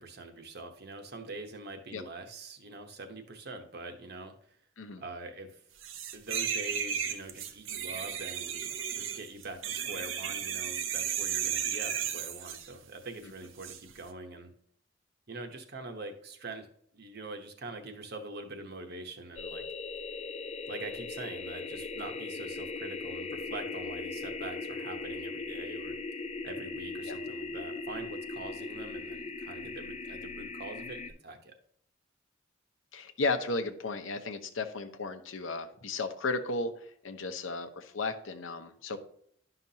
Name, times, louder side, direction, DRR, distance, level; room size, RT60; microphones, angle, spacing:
voice 1, 0.0-4.3 5.0-5.6 6.1-14.5 15.3-16.7 16.9-19.7 20.7-26.0 26.4-31.5, right 2 dB, 55° right, 6 dB, 1.0 m, -44 dB
sound 1, 5.8-12.7 13.6-13.8, right 8 dB, 85° right, 0.7 m, -34 dB
sound 2, 19.4-31.1, left 3 dB, 35° left, 0.4 m, -39 dB
voice 2, 32.9-39.0, left 3 dB, 85° left, 7 dB, 0.8 m, -34 dB
11.0 x 5.8 x 2.8 m, 0.66 s
head